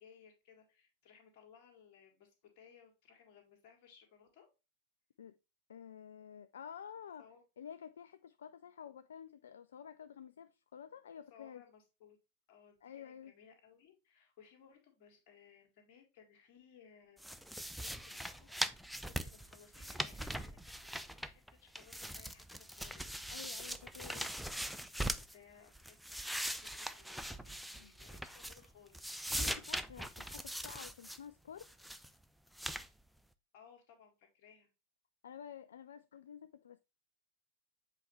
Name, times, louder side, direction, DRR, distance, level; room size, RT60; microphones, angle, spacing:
voice 1, 0.0-4.5 7.2-7.4 11.3-12.2 12.5-17.3 17.6-20.3 20.6-23.1 25.2-29.1 33.5-34.7, left 7 dB, 45° left, 2.0 m, -62 dB
voice 2, 5.7-7.3 7.6-11.6 12.8-13.3 23.3-24.3 27.8-27.9 29.3-31.7 35.2-36.8, left 8 dB, 65° left, 0.3 m, -51 dB
sound 1, 17.2-21.5 21.7-25.3 25.7-28.7 28.9-31.2 31.6-32.1 32.6-32.9, equal, ahead, 0.4 m, -41 dB
7.5 x 4.1 x 3.2 m
figure-of-eight pair, 90°, 0 cm